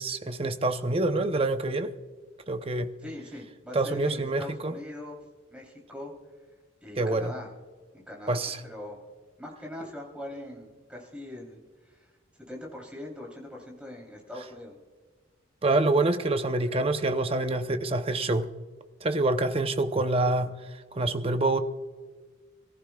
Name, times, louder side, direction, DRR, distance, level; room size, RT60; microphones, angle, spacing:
voice 1, 0.0-1.9 2.5-2.9 3.7-4.8 7.0-7.3 8.3-8.6 15.6-18.5 19.0-20.6 20.9-21.6, right 2 dB, 30° right, 0.7 m, -26 dB
voice 2, 3.0-5.2 5.5-6.1 6.8-7.5 7.9-9.0 9.4-12.1 12.5-14.8, left 1 dB, 5° right, 3.2 m, -42 dB
26.5 x 14.5 x 2.3 m
head